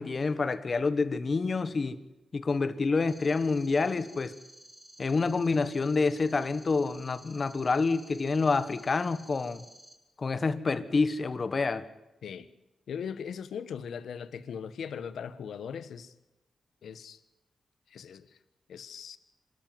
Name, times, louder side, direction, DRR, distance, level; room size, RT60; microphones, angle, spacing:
voice 1, 0.0-2.0 2.3-4.4 5.0-9.6 10.2-11.9, left 4 dB, 45° left, 1.4 m, -28 dB
sound 1, 3.1-9.9, right 1 dB, 20° right, 4.2 m, -53 dB
voice 2, 12.9-16.1 16.8-17.2 17.9-18.4 18.7-19.2, left 7 dB, 90° left, 1.2 m, -39 dB
26.5 x 13.0 x 9.4 m
cardioid pair, 85°, 0 cm